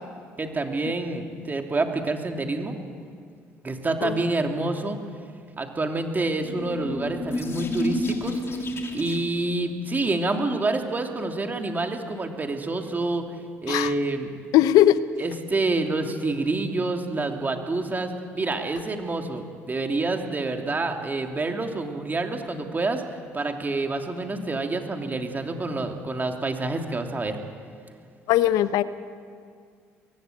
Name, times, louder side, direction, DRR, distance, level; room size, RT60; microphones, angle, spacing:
voice 1, 0.4-2.7 3.6-5.0 5.6-8.4 8.9-13.3 13.6-14.3 15.2-23.0 23.3-27.4, right 2 dB, 30° right, 4 dB, 2.9 m, -27 dB
sound 1, 6.4-9.5, left 1 dB, 40° left, 3.8 m, -30 dB
voice 2, 14.5-15.0 28.3-28.8, left 13 dB, 75° left, 14 dB, 1.0 m, -19 dB
22.5 x 15.5 x 9.2 m, 2.2 s
hypercardioid pair, 60°, 6 cm